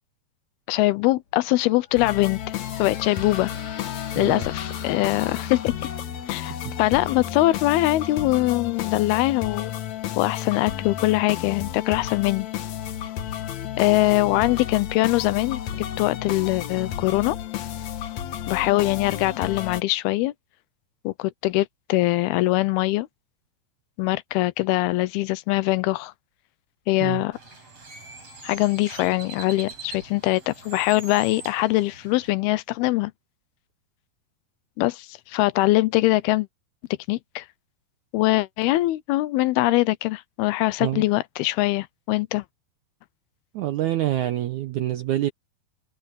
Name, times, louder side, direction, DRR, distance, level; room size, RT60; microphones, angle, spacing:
voice 1, 0.7-2.4 2.8-3.5 4.2-5.7 6.3-9.7 10.2-12.5 13.8-17.4 18.5-20.3 21.0-23.1 24.0-26.1 26.9-27.4 28.4-33.1 34.8-36.5 37.1-37.5 38.1-42.4, left 18 dB, 85° left, 2.6 m, -22 dB
Squeak, 1.3-10.1, left 7 dB, 45° left, 2.4 m, -44 dB
sound 1, 2.0-19.8, left 10 dB, 65° left, 2.0 m, -32 dB
voice 2, 6.4-6.8 27.0-27.2 40.8-41.0 43.5-45.3, right 14 dB, 80° right, 1.7 m, -26 dB
Bird, 27.3-32.3, right 3 dB, 40° right, 8.6 m, -43 dB
omnidirectional pair, 4.5 m